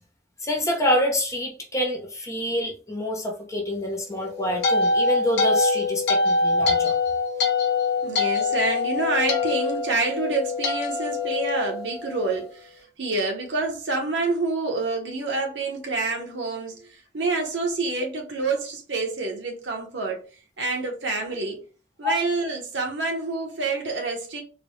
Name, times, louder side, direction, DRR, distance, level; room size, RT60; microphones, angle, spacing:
voice 1, 0.4-6.9 22.0-22.1, left 1 dB, 20° left, 0.8 m, -27 dB
sound 1, 4.1-12.5, left 3 dB, 65° left, 0.9 m, -24 dB
voice 2, 8.0-12.7 13.0-20.2 20.6-21.6 22.0-24.4, right 3 dB, 80° right, 1.1 m, -27 dB
3.8 x 2.3 x 3.1 m
head